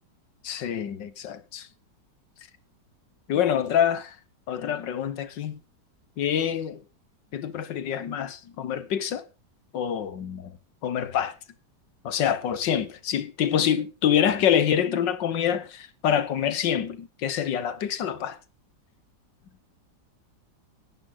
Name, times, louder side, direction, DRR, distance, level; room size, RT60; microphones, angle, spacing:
voice 1, 0.4-1.7 3.3-4.2 4.5-5.6 6.2-6.8 7.3-9.2 9.7-10.5 10.8-11.4 12.0-18.4, left 9 dB, 80° left, 1.7 m, -26 dB
16.5 x 11.0 x 4.0 m
omnidirectional pair, 1.9 m